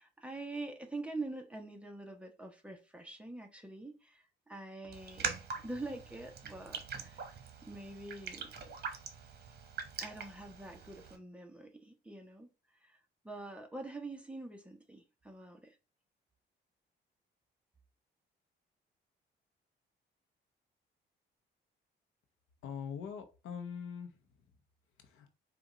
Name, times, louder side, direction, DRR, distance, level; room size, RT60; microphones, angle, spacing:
voice 1, 0.0-5.4 5.6-7.3 7.6-8.5 10.0-15.8, right 2 dB, 5° right, 1.0 m, -45 dB
Raindrop, 4.9-11.2, right 6 dB, 55° right, 1.1 m, -43 dB
voice 2, 22.6-24.5 25.0-25.3, left 7 dB, 90° left, 0.9 m, -43 dB
5.0 x 2.5 x 3.9 m
cardioid pair, 90°, 20 cm